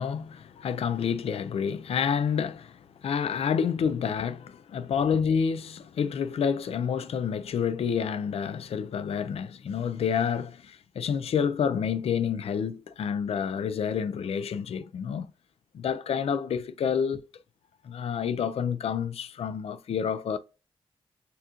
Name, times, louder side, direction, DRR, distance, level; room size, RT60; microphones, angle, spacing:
voice 1, 0.0-15.3 15.7-17.4 17.8-20.4, left 7 dB, 85° left, 0.4 m, -29 dB
6.8 x 2.4 x 2.9 m
wide cardioid pair, 90°, 10 cm